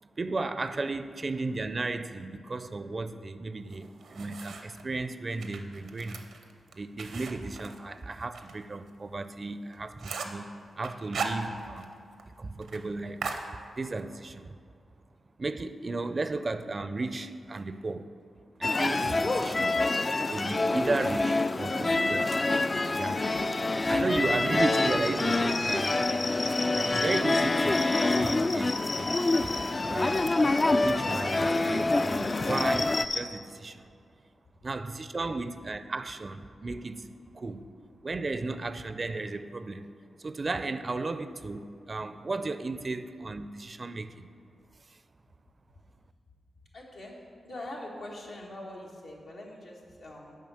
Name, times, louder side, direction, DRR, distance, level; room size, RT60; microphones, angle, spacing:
voice 1, 0.0-6.2 6.7-10.5 10.8-11.9 12.4-13.2 13.7-14.5 15.4-18.1 18.6-19.8 20.3-22.3 23.0-23.2 23.6-26.0 26.7-29.5 29.9-30.3 30.7-34.0 34.6-37.7 38.0-39.9 40.2-44.3 44.9-45.0, right 3 dB, 45° right, 12 dB, 0.4 m, -34 dB
sound 1, 3.7-4.8 5.3-8.5 8.9-9.0 9.4-9.5 9.7-10.4 10.8-11.9 12.2-12.3 12.6-12.8 13.2-14.1, right 5 dB, 85° right, 0.6 m, -38 dB
sound 2, 18.6-33.1, left 2 dB, 40° left, 0.3 m, -26 dB
sound 3, 24.6-33.2, left 3 dB, 65° left, 0.9 m, -37 dB
voice 2, 46.7-50.4, left 1 dB, 80° left, -3 dB, 1.4 m, -43 dB
7.3 x 5.0 x 6.9 m, 2.3 s
supercardioid pair, 45°, 0 cm